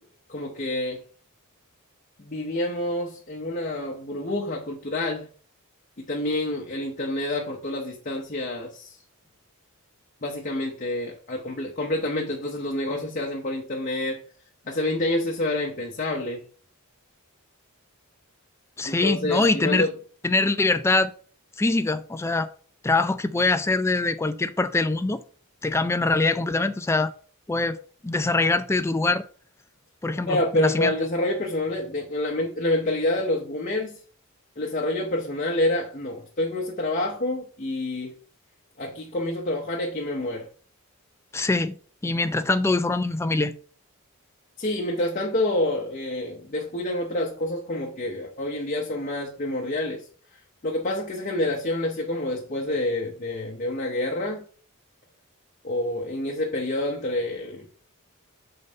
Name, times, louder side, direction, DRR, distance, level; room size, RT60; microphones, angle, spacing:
voice 1, 0.3-1.0 2.2-5.3 6.0-9.0 10.2-14.2 14.7-16.4 18.8-19.9 30.3-33.9 34.6-38.1 38.8-40.5 44.6-50.0 50.6-54.4 55.6-57.7, left 1 dB, 35° left, 0.8 m, -28 dB
voice 2, 18.8-19.9 20.2-21.1 21.6-22.5 22.8-25.2 25.6-27.1 27.5-27.8 28.0-29.2 30.0-30.9 41.3-41.7 42.0-43.5, left 3 dB, 10° left, 0.3 m, -23 dB
5.2 x 4.0 x 5.3 m
head